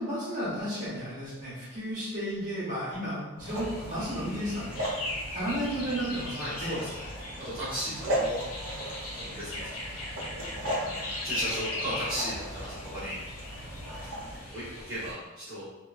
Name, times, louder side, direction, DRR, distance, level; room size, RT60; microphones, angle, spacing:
voice 1, 0.0-4.7 5.3-6.7 7.8-8.0, equal, 40° right, -11 dB, 1.1 m, -33 dB
sound 1, 3.4-15.1, left 2 dB, 90° left, 0.8 m, -39 dB
sound 2, 3.4-14.4, equal, 85° right, 0.7 m, -37 dB
voice 2, 6.4-7.1 7.4-8.4 9.2-10.0 11.2-13.2 13.9-14.1 14.4-15.7, equal, 15° right, -16 dB, 1.0 m, -36 dB
2.9 x 2.3 x 2.4 m, 1.1 s
head